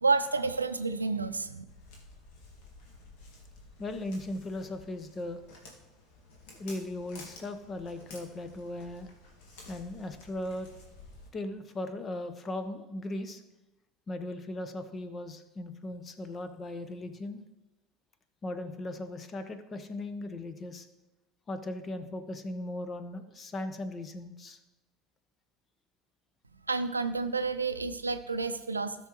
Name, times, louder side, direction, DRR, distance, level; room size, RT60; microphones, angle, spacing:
voice 1, 0.0-1.6 26.7-29.0, right 4 dB, 90° right, 11 dB, 0.5 m, -30 dB
Walk footsteps, 1.7-11.3, left 2 dB, 65° left, 2.1 m, -52 dB
voice 2, 3.8-5.4 6.6-9.1 9.7-10.7 11.3-13.4 14.1-17.4 18.4-20.9 21.5-24.6, left 1 dB, 35° left, 9 dB, 1.1 m, -38 dB
17.0 x 6.1 x 3.1 m, 1.0 s
figure-of-eight pair, 65°, 0 cm